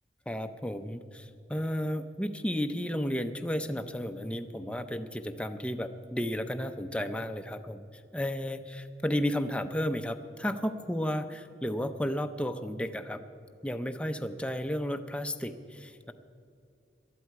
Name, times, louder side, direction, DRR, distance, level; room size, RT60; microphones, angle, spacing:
voice 1, 0.3-7.9 8.1-13.2 13.6-16.1, equal, 5° left, 7 dB, 0.5 m, -33 dB
18.5 x 12.5 x 4.7 m, 2.6 s
head